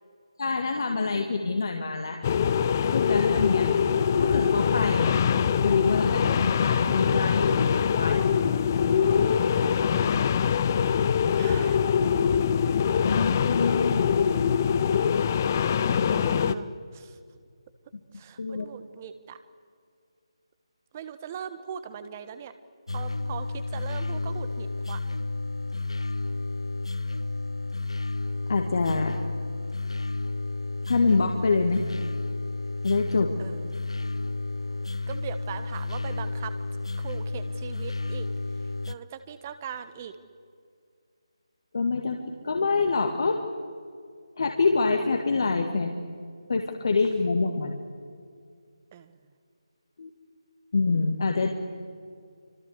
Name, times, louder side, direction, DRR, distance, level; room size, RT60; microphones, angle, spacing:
voice 1, 0.4-2.2 2.8-3.7 4.2-5.2 5.6-8.3 13.0-14.0 18.4-18.7 28.5-29.2 30.9-31.8 32.8-33.3 41.7-43.4 44.4-45.9 46.5-47.7 50.0-50.1 50.7-51.5, left 4 dB, 50° left, 3 dB, 2.1 m, -26 dB
sound 1, 2.2-16.5, left 7 dB, 30° left, 0.8 m, -23 dB
voice 2, 10.4-10.7 11.3-11.9 15.2-16.7 16.9-17.2 18.1-19.4 20.9-22.5 22.9-25.0 33.4-33.7 35.1-36.5 37.0-38.3 38.9-40.2 48.9-49.2, right 8 dB, 25° right, 11 dB, 1.3 m, -40 dB
sound 2, 22.9-39.0, left 3 dB, 70° left, 1.0 m, -32 dB
27.5 x 25.5 x 8.2 m, 2.2 s
figure-of-eight pair, 150°, 3 cm